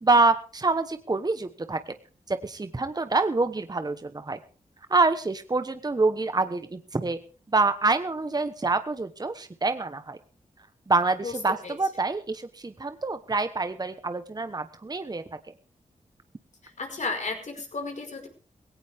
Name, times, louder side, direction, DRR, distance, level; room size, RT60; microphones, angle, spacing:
voice 1, 0.0-1.8 2.3-4.4 4.9-7.2 7.5-10.2 10.9-15.2, right 3 dB, 30° right, 10 dB, 1.1 m, -26 dB
voice 2, 16.8-18.3, left 3 dB, 65° left, 3 dB, 5.2 m, -33 dB
17.5 x 17.0 x 3.6 m, 0.37 s
cardioid pair, 55°, 13 cm